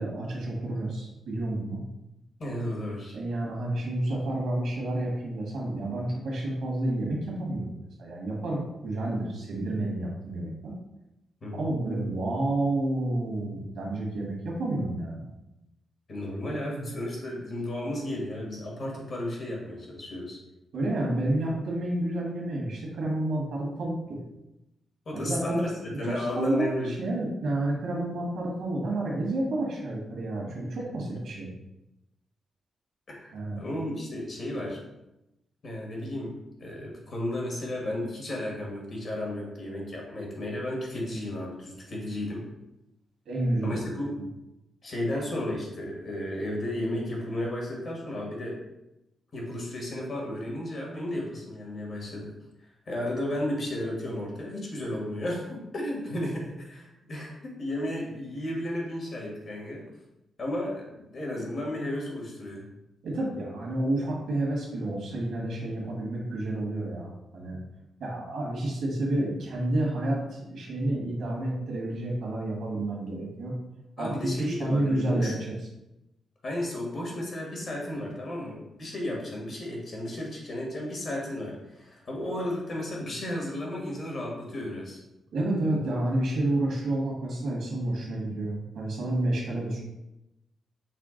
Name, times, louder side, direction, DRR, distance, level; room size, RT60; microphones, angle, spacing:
voice 1, 0.0-1.8 3.1-10.7 11.5-15.3 20.7-24.2 25.1-25.6 26.0-31.5 33.3-33.6 43.2-43.8 63.0-67.6 68.0-73.5 74.0-75.3 85.3-89.8, right 1 dB, 80° right, -2 dB, 1.5 m, -30 dB
voice 2, 2.4-3.1 11.4-11.6 16.1-20.4 25.0-26.9 31.1-31.2 33.1-34.8 35.6-42.4 43.6-44.1 44.8-48.6 49.3-52.3 52.9-59.9 60.4-62.6 74.0-75.3 76.4-85.0, left 1 dB, 45° left, -2 dB, 1.4 m, -33 dB
5.8 x 2.2 x 3.8 m, 0.92 s
wide cardioid pair, 135°, 0 cm